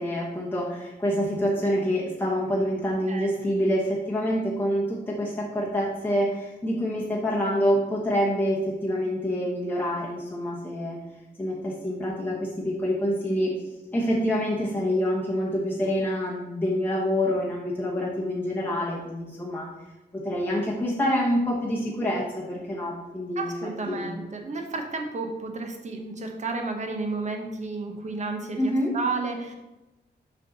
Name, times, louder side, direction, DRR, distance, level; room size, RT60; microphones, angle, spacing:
voice 1, 0.0-11.0 11.4-13.5 13.9-19.7 20.1-23.5 23.9-24.2 28.6-28.9, equal, 10° left, -5 dB, 1.0 m, -26 dB
voice 2, 3.1-3.5 23.4-29.5, right 3 dB, 40° right, 3 dB, 0.9 m, -32 dB
6.2 x 5.5 x 4.0 m, 1.1 s
wide cardioid pair, 180°, 18 cm